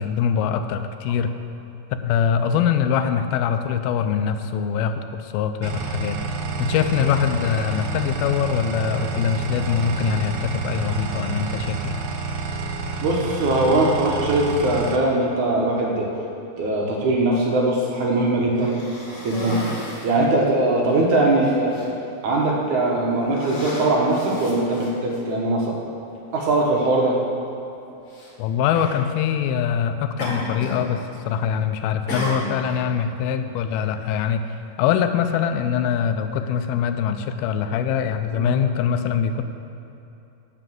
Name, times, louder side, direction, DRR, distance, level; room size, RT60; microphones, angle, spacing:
voice 1, 0.0-1.3 1.9-6.2 6.6-12.0 28.4-39.4, left 8 dB, 85° left, 9 dB, 2.4 m, -23 dB
sound 1, 5.6-15.0, right 3 dB, 80° right, 2.7 m, -28 dB
voice 2, 13.0-16.1 16.6-18.8 19.2-19.6 20.0-21.9 22.2-25.8 26.3-27.2 38.4-38.5, right 2 dB, 65° right, -2 dB, 2.2 m, -21 dB
Cough, 18.5-20.2 20.9-21.0 21.4-21.9 22.6-22.9 23.3-25.2 26.2-26.3 28.1-28.3 28.7-29.0 30.2-30.9 31.1-31.6 32.1-32.8, left 1 dB, 40° left, 2.6 m, -33 dB
11.5 x 5.8 x 7.7 m, 2.8 s
omnidirectional pair, 4.3 m